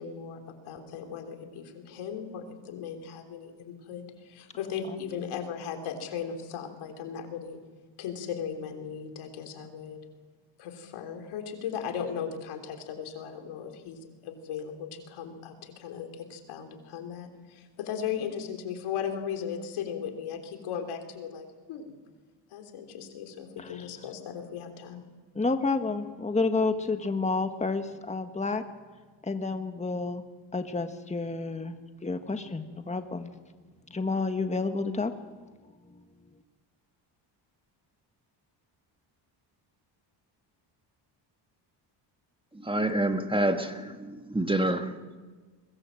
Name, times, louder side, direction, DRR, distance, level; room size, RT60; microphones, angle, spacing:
voice 1, 0.0-7.6 8.0-10.0 10.6-22.0 22.5-25.0, left 7 dB, 80° left, 5 dB, 3.6 m, -37 dB
voice 2, 25.3-28.6 29.2-30.2 30.5-33.3 33.9-35.1, left 3 dB, 15° left, 7 dB, 1.6 m, -30 dB
voice 3, 42.5-45.2, right 1 dB, 10° right, 6 dB, 1.8 m, -28 dB
22.5 x 20.0 x 7.7 m, 1.4 s
cardioid pair, 80°, 48 cm